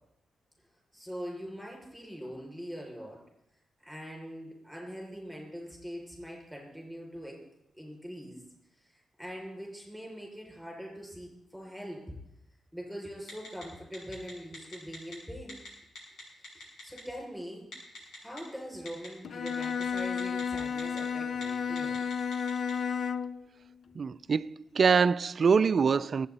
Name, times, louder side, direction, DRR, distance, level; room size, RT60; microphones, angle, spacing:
voice 1, 0.9-3.2 3.8-7.4 7.7-8.4 9.2-12.1 12.7-15.6 16.5-17.7 18.2-22.0, equal, 5° left, 6.4 m, -42 dB
Telephone, 13.3-13.6 13.9-15.1 15.5-15.7 15.9-17.0 17.7-18.4 18.9-19.1 19.5-21.0 21.3-21.4 21.8-22.7, left 2 dB, 80° left, 6.5 m, -43 dB
Bowed string instrument, 19.2-23.4, left 6 dB, 60° left, 0.6 m, -32 dB
voice 2, 23.9-26.3, right 5 dB, 50° right, 0.5 m, -24 dB
24.5 x 8.8 x 4.3 m
cardioid pair, 105°, 0 cm